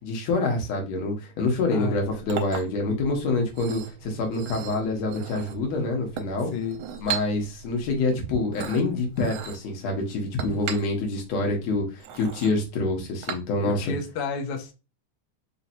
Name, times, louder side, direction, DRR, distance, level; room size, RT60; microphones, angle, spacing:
voice 1, 0.0-6.5 7.0-13.9, left 2 dB, 65° left, 2.2 m, -26 dB
voice 2, 1.7-2.3 6.5-6.8 13.6-14.7, left 5 dB, 90° left, 1.2 m, -32 dB
Chink clink, 1.9-13.9, right 8 dB, 80° right, 2.1 m, -39 dB
5.1 x 2.8 x 2.7 m
omnidirectional pair, 3.5 m